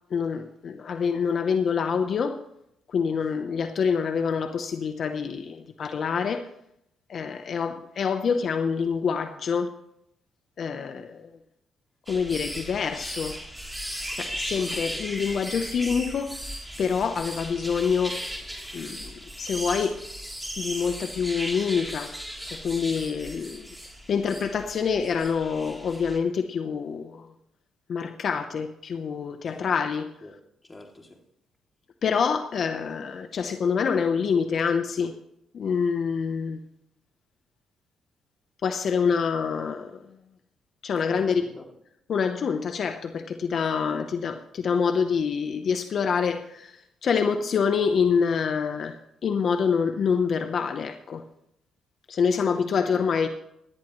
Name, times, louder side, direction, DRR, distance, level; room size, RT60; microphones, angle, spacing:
voice 1, 0.1-2.4 2.9-6.5 7.1-9.7 10.6-11.3 12.1-13.4 14.1-16.4 16.8-18.2 18.7-20.0 20.6-22.1 22.4-23.7 24.1-27.3 27.9-30.1 32.0-35.2 35.5-36.6 38.6-40.0 40.8-41.4 42.1-51.2 52.1-53.3, left 6 dB, 55° left, 0.8 m, -26 dB
sound 1, 12.1-26.2, equal, 5° right, 3.2 m, -37 dB
voice 2, 30.2-31.2 41.0-41.7 43.9-44.3 52.5-53.2, left 2 dB, 20° left, 2.7 m, -46 dB
17.5 x 12.0 x 3.1 m
cardioid pair, 90°, 0 cm